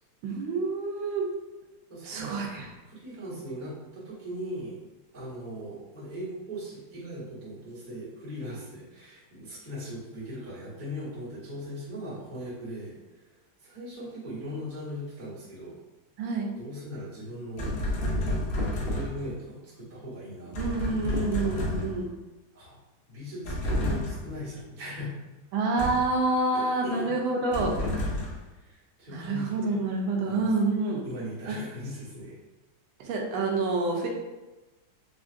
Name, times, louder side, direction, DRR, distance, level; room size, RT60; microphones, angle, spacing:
voice 1, 0.2-1.3 2.0-2.7 16.2-16.5 20.6-22.1 25.5-27.7 29.1-31.0 31.5-31.6 33.0-34.1, right 3 dB, 80° right, 0 dB, 1.4 m, -28 dB
voice 2, 1.9-2.4 2.9-4.8 5.1-12.9 13.6-15.8 16.6-17.7 18.2-21.3 22.5-22.8 23.1-25.2 26.5-27.1 28.6-29.7 30.2-30.5 31.0-32.4, equal, 25° right, -10 dB, 1.1 m, -39 dB
sound 1, 17.6-19.3 20.5-22.1 23.4-24.4 25.8-26.2 27.5-28.5, left 1 dB, 85° left, 1.6 m, -30 dB
4.3 x 2.4 x 2.4 m, 1.1 s
omnidirectional pair, 2.3 m